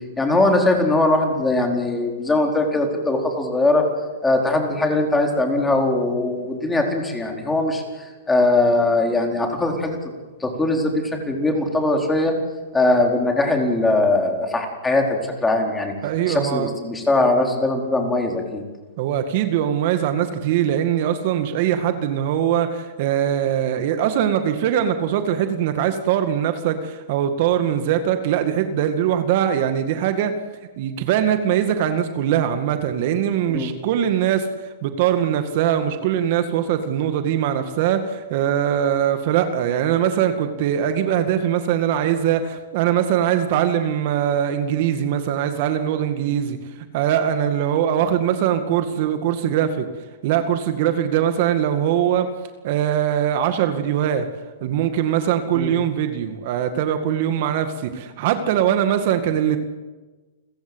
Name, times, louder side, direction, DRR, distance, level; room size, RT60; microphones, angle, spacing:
voice 1, 0.2-3.9 4.2-10.0 10.4-12.3 12.7-15.9 16.2-18.6 33.5-33.7 55.5-55.7, left 2 dB, 10° left, 2 dB, 4.5 m, -20 dB
voice 2, 16.0-16.7 17.2-17.3 19.0-30.3 30.8-34.5 34.8-46.6 46.9-49.9 50.2-52.3 52.6-54.3 54.6-59.6, right 10 dB, 50° right, 8 dB, 2.0 m, -21 dB
29.5 x 15.0 x 8.1 m, 1.3 s
hypercardioid pair, 135°, 0 cm